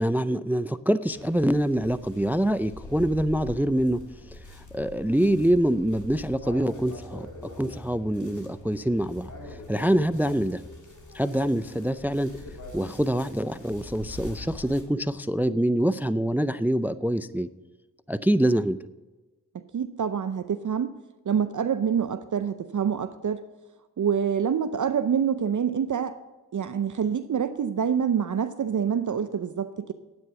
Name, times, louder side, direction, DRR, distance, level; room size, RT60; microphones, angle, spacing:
voice 1, 0.0-4.0 4.3-7.3 7.6-10.6 11.1-12.4 12.7-17.5 18.1-18.8, right 1 dB, 5° right, 15 dB, 0.4 m, -25 dB
sound 1, 1.1-14.8, left 2 dB, 50° left, 3.0 m, -44 dB
voice 2, 19.7-20.9 21.3-23.4 24.0-26.1 26.5-29.9, right 7 dB, 50° right, 10 dB, 0.6 m, -26 dB
9.6 x 8.8 x 6.9 m, 1.2 s
cardioid pair, 45°, 38 cm